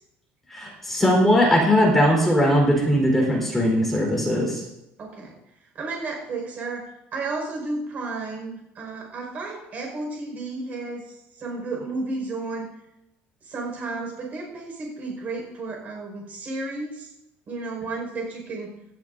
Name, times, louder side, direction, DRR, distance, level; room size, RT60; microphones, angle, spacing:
voice 1, 0.5-4.6, equal, 5° left, -2 dB, 4.1 m, -20 dB
voice 2, 5.0-5.3 5.8-6.8 7.1-12.7 13.4-17.1 17.5-18.7, right 3 dB, 35° right, 0 dB, 5.2 m, -32 dB
18.5 x 13.0 x 2.7 m, 0.87 s
cardioid pair, 170°, 5 cm